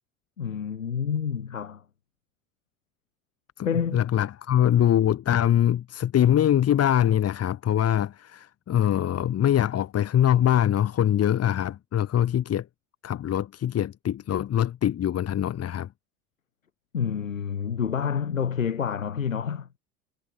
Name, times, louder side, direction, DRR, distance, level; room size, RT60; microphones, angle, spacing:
voice 1, 0.4-1.8 3.6-4.0 16.9-19.8, left 7 dB, 80° left, 7.8 m, -28 dB
voice 2, 3.6-12.7 13.0-15.9, left 11 dB, 40° left, 5.5 m, -23 dB
figure-of-eight pair, 75°, 39 cm